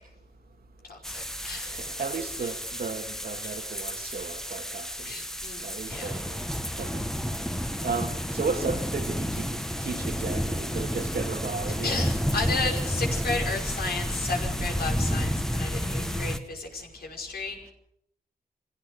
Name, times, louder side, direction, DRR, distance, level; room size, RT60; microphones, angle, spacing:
voice 1, 0.8-1.7 2.4-2.5 3.4-3.5 5.0-6.1 11.8-17.7, left 3 dB, 90° left, 5.5 m, -33 dB
sound 1, 1.0-16.4, equal, 5° left, 1.3 m, -31 dB
voice 2, 1.6-4.9 5.6-6.4 6.7-7.0 7.8-11.9, right 5 dB, 80° right, 2.2 m, -34 dB
26.0 x 16.5 x 6.5 m
wide cardioid pair, 120°, 16 cm